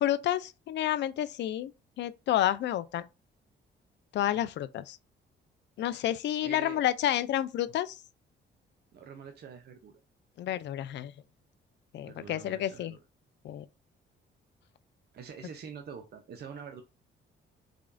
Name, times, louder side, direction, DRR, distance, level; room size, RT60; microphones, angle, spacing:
voice 1, 0.0-1.7 2.0-3.0 4.1-5.0 5.8-8.0 10.4-11.1 11.9-13.0 13.4-13.7, left 12 dB, 65° left, 0.4 m, -30 dB
voice 2, 6.4-6.8 8.9-9.9 12.0-13.0 15.1-16.8, right 6 dB, 55° right, 0.6 m, -45 dB
4.9 x 2.3 x 2.5 m
cardioid pair, 90°, 20 cm